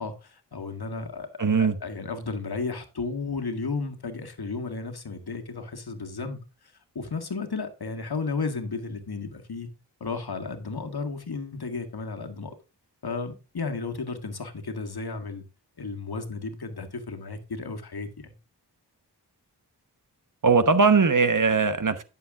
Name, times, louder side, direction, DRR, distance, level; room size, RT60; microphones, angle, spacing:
voice 1, 0.0-1.3 1.6-6.4 6.9-9.7 10.0-12.5 13.0-15.4 15.8-18.1, left 4 dB, 65° left, 1.7 m, -33 dB
voice 2, 1.4-1.8 20.4-22.0, right 4 dB, 50° right, 1.1 m, -20 dB
10.5 x 6.9 x 3.6 m
wide cardioid pair, 60°, 41 cm